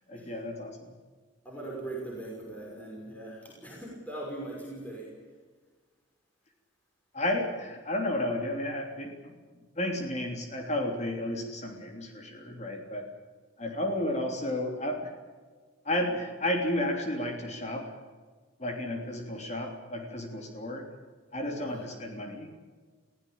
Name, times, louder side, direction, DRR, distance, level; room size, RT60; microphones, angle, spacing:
voice 1, 0.1-0.9 7.1-9.3 9.7-13.1 13.6-15.1 15.8-17.9 18.6-20.9 21.3-22.5, left 1 dB, 35° left, 3 dB, 3.3 m, -32 dB
voice 2, 1.4-5.1 21.6-21.9, right 2 dB, 10° left, -3 dB, 5.7 m, -40 dB
22.5 x 16.0 x 8.8 m, 1.4 s
head